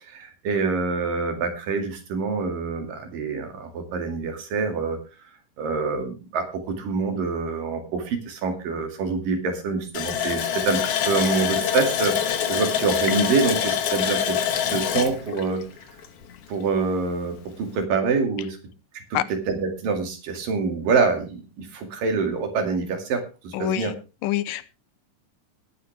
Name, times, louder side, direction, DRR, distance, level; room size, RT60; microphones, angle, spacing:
voice 1, 0.1-5.0 5.6-12.2 12.5-14.4 14.7-15.6 16.5-18.6 18.9-24.0, right 4 dB, 75° right, 4 dB, 4.0 m, -26 dB
Water tap faucet, 9.9-16.4 16.8-16.9 17.3-17.5, left 9 dB, 60° left, 1.8 m, -25 dB
voice 2, 23.5-23.9 24.2-24.7, left 14 dB, 80° left, 16 dB, 2.4 m, -26 dB
20.0 x 9.6 x 3.4 m, 0.30 s
omnidirectional pair, 3.9 m